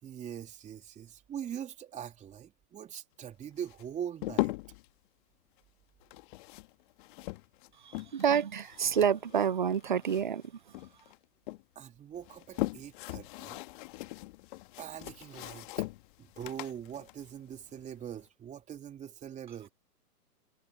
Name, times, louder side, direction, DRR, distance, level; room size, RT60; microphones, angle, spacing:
voice 1, 0.0-4.6 11.7-13.6 14.8-15.9 16.2-19.7, right 9 dB, 15° right, 3.5 m, -42 dB
sound 1, 3.6-4.9 6.0-8.3 8.6-10.5 10.7-11.6 12.1-18.2, left 21 dB, 30° left, 1.7 m, -39 dB
voice 2, 7.8-10.8, right 8 dB, 35° right, 0.4 m, -29 dB
figure-of-eight pair, 125°, 48 cm